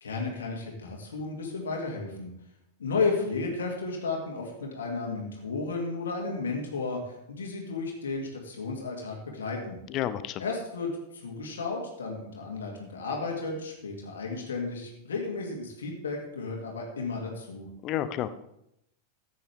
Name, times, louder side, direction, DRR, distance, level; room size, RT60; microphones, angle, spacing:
voice 1, 0.0-2.3 2.8-9.8 10.4-17.7, left 3 dB, 65° left, 0 dB, 2.6 m, -33 dB
voice 2, 9.9-10.4 17.8-18.3, left 11 dB, 35° left, 14 dB, 0.7 m, -30 dB
14.5 x 9.2 x 3.6 m, 0.82 s
figure-of-eight pair, 90°, 0 cm